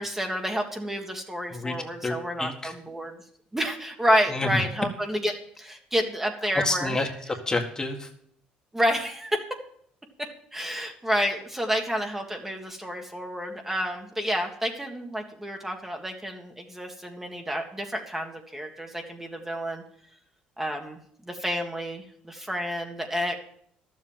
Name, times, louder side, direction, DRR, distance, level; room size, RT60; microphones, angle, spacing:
voice 1, 0.0-3.1 3.5-7.0 8.7-9.4 10.2-19.8 20.6-21.0 21.3-23.4, equal, 10° right, 3 dB, 1.8 m, -29 dB
voice 2, 2.0-2.7 4.3-4.5 6.5-8.1, left 2 dB, 20° left, 3 dB, 1.9 m, -29 dB
12.0 x 7.5 x 7.5 m, 0.65 s
cardioid pair, 95°, 3 cm